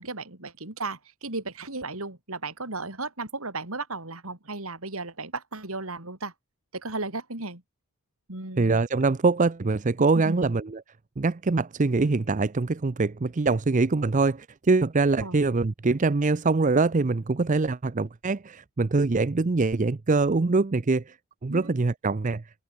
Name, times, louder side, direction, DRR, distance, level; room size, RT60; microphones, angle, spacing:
voice 1, 0.0-6.3 6.7-7.6 8.3-8.8 10.2-10.4 15.2-15.4 21.5-21.8, right 3 dB, 70° right, 4.0 m, -35 dB
voice 2, 8.6-10.8 11.2-21.2 21.4-22.4, right 3 dB, 35° right, 0.5 m, -24 dB
open air
head